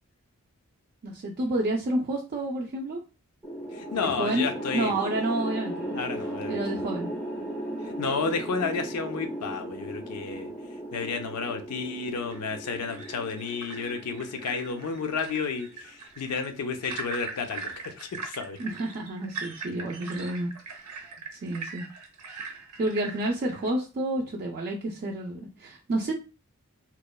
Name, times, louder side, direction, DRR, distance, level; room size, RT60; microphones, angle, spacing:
voice 1, 1.0-3.0 4.0-4.5 4.7-6.0 6.5-7.1 18.6-20.5 21.3-21.8 22.8-26.1, right 1 dB, 45° right, -1 dB, 0.3 m, -29 dB
sound 1, 3.4-15.7, right 1 dB, ahead, 0.6 m, -37 dB
voice 2, 3.7-4.9 5.9-6.6 7.8-10.5 10.9-18.6, left 5 dB, 85° left, 6 dB, 0.5 m, -31 dB
sound 2, 12.1-23.7, right 4 dB, 90° right, 0.6 m, -41 dB
2.9 x 2.1 x 2.2 m, 0.32 s
head